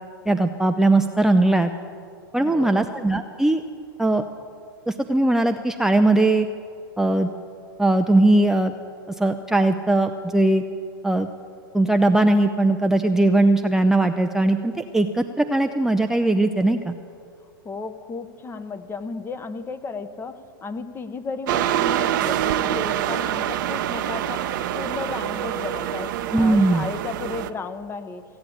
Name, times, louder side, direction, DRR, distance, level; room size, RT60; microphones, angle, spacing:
voice 1, 0.3-1.7 2.3-3.6 4.0-4.2 4.9-6.5 7.0-7.3 7.8-8.7 9.2-10.6 11.0-11.3 11.7-16.9 26.3-26.8, right 2 dB, 5° right, 6 dB, 0.5 m, -19 dB
voice 2, 2.4-2.9 17.6-24.5 24.7-28.2, left 4 dB, 20° left, 10 dB, 0.9 m, -34 dB
sound 1, 21.5-27.5, right 11 dB, 60° right, 0.7 m, -25 dB
16.0 x 8.7 x 8.5 m, 2.5 s
hypercardioid pair, 110°, 12 cm